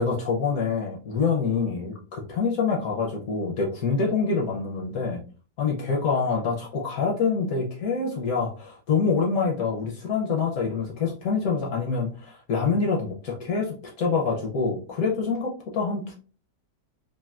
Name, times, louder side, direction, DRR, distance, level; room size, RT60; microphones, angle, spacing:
voice 1, 0.0-5.2 5.6-16.1, left 5 dB, 65° left, 0 dB, 0.9 m, -26 dB
3.4 x 2.5 x 2.3 m, 0.38 s
omnidirectional pair, 1.9 m